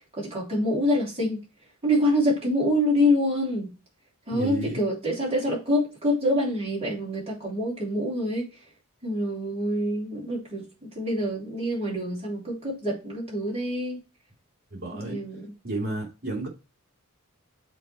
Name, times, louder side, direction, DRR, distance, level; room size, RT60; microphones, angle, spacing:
voice 1, 0.1-1.4 1.8-3.7 4.3-8.5 9.0-14.0 14.9-15.5, left 1 dB, 30° right, 3.3 m, -26 dB
voice 2, 4.3-4.8 14.7-15.2 15.6-16.5, right 2 dB, 45° right, 2.5 m, -32 dB
7.7 x 3.6 x 4.7 m
head